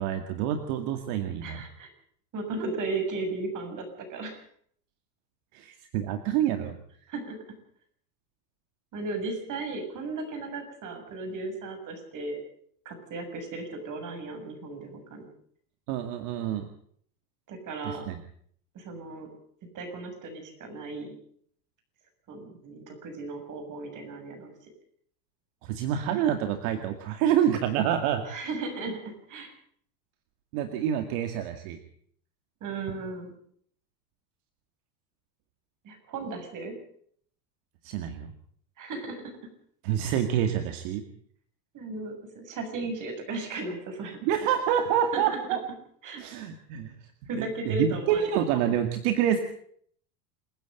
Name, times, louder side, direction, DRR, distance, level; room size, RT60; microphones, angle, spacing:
voice 1, 0.0-1.6 5.5-6.8 15.9-16.7 17.8-18.2 25.6-28.2 30.5-31.8 37.8-38.3 39.8-41.0 44.2-45.6 46.2-46.9 47.3-49.4, right 10 dB, 60° right, 7 dB, 2.3 m, -27 dB
voice 2, 1.4-1.9 2.3-4.4 7.1-7.4 8.9-12.4 12.9-15.3 17.5-18.1 18.7-19.3 19.7-21.1 22.3-24.5 28.3-29.5 32.6-33.3 35.8-36.7 38.8-39.2 40.0-40.1 41.7-44.2 46.0-46.2 47.3-48.4, right 3 dB, 40° right, 5 dB, 7.4 m, -35 dB
28.0 x 10.5 x 8.9 m, 0.63 s
supercardioid pair, 125°, 48 cm